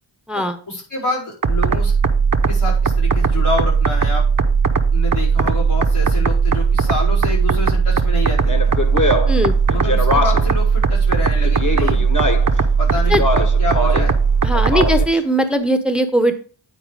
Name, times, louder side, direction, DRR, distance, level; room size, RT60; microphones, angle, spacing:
voice 1, 0.3-1.9 2.5-4.3 4.9-8.7 9.7-12.0 12.8-14.1, left 2 dB, 80° left, -6 dB, 4.9 m, -27 dB
sound 1, 1.4-15.1, right 5 dB, 40° right, 0.8 m, -17 dB
Speech, 8.4-10.6 11.4-12.6 13.0-14.2 14.5-15.2, left 1 dB, 40° left, 1.3 m, -22 dB
voice 2, 14.4-16.4, equal, ahead, 9 dB, 0.8 m, -19 dB
9.4 x 4.4 x 5.0 m, 0.40 s
wide cardioid pair, 45°, 49 cm